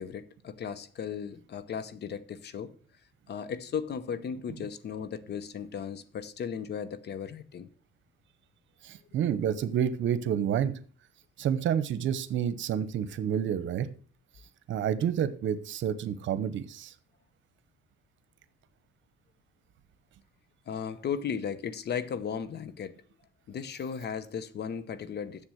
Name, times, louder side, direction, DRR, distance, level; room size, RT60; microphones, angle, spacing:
voice 1, 0.0-2.7 3.3-7.7 20.7-22.9 23.5-25.5, left 7 dB, 55° left, 0.9 m, -36 dB
voice 2, 8.8-10.7 11.4-13.9 14.7-16.9, right 9 dB, 70° right, 0.9 m, -29 dB
7.3 x 7.0 x 6.3 m
cardioid pair, 90°, 20 cm